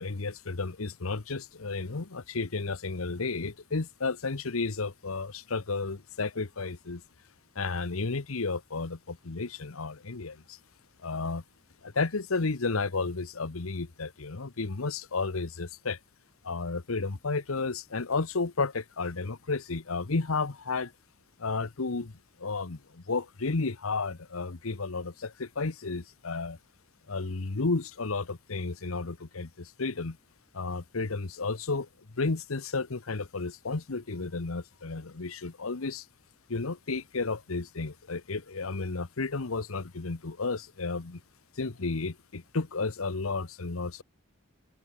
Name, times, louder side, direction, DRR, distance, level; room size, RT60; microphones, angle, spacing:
voice 1, 0.0-7.0 7.5-10.6 11.0-11.4 11.8-16.0 16.4-20.9 21.4-22.1 22.4-26.6 27.1-30.2 30.5-31.9 32.1-36.0 36.5-41.2 41.6-44.0, left 3 dB, 90° left, 1.1 m, -32 dB
head